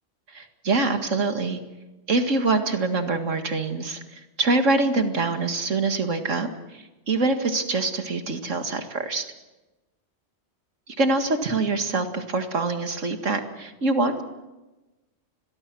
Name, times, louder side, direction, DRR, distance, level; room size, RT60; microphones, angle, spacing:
voice 1, 0.3-1.6 2.1-9.2 11.0-14.2, right 3 dB, 85° right, 7 dB, 2.4 m, -25 dB
29.5 x 22.5 x 6.2 m, 1.1 s
omnidirectional pair, 1.3 m